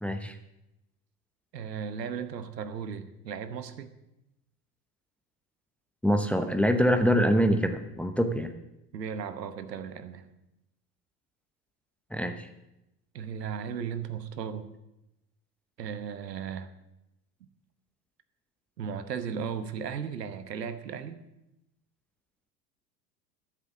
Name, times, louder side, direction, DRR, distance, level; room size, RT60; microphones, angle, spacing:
voice 1, 0.0-0.4 6.0-8.5 12.1-12.5, equal, 5° left, 7 dB, 0.9 m, -25 dB
voice 2, 1.5-3.9 8.9-10.2 13.1-14.7 15.8-16.7 18.8-21.2, right 7 dB, 75° right, 11 dB, 1.2 m, -36 dB
13.0 x 7.3 x 7.3 m, 0.90 s
figure-of-eight pair, 75°, 49 cm